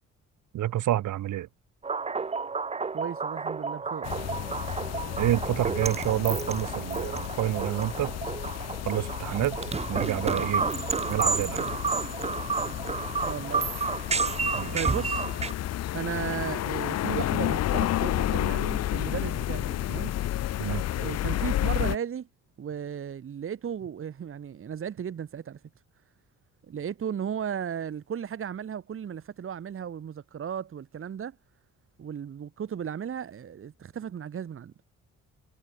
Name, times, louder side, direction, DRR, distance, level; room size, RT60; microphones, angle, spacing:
voice 1, 0.5-1.5 5.2-8.2 8.8-9.6 9.9-10.6 11.1-11.7 14.5-14.9 20.6-20.9, right 13 dB, 80° right, 2.4 m, -28 dB
sound 1, 1.8-15.5, right 4 dB, 20° right, 0.8 m, -31 dB
voice 2, 2.9-4.1 13.3-13.7 14.7-15.3 15.9-20.1 21.0-22.3 22.6-25.6 26.7-31.3 32.0-34.7, right 8 dB, 45° right, 1.4 m, -35 dB
sound 2, 4.0-22.0, left 13 dB, 55° left, 0.6 m, -31 dB
cardioid pair, 90°, 30 cm